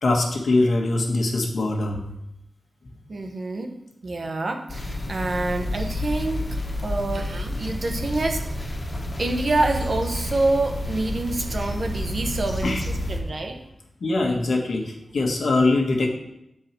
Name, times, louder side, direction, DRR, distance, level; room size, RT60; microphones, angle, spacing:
voice 1, 0.0-2.1 3.5-3.6 12.6-13.0 14.0-16.1, left 2 dB, 75° left, 1 dB, 1.4 m, -22 dB
voice 2, 3.1-3.7 4.0-6.4 6.8-8.7 9.2-13.6, right 2 dB, 55° right, 4 dB, 0.9 m, -27 dB
sound 1, 4.7-13.2, left 1 dB, 30° left, 1.2 m, -30 dB
8.9 x 4.7 x 4.4 m, 0.83 s
wide cardioid pair, 120°, 0 cm